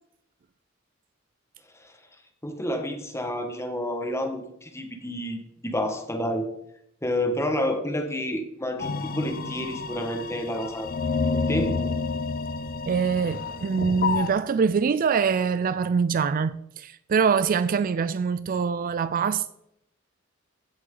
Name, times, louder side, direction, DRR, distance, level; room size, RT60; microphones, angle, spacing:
voice 1, 2.4-6.5 7.0-10.9 11.5-11.7, left 1 dB, 15° left, 1.5 m, -29 dB
sound 1, 8.8-14.3, left 4 dB, 45° left, 0.6 m, -29 dB
voice 2, 12.9-19.5, right 6 dB, 45° right, 0.4 m, -24 dB
16.0 x 7.5 x 3.9 m
head